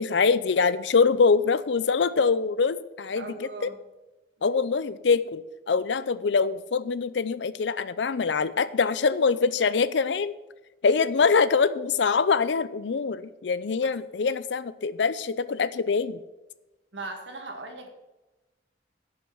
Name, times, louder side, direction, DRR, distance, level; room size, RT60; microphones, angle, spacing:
voice 1, 0.0-3.3 3.6-3.7 4.4-10.3 10.8-16.2, left 5 dB, 80° left, 16 dB, 0.5 m, -24 dB
voice 2, 3.2-3.8 4.4-4.5 13.8-13.9 16.9-17.9, right 2 dB, 80° right, 4 dB, 1.9 m, -39 dB
11.0 x 5.5 x 7.7 m, 1.0 s
head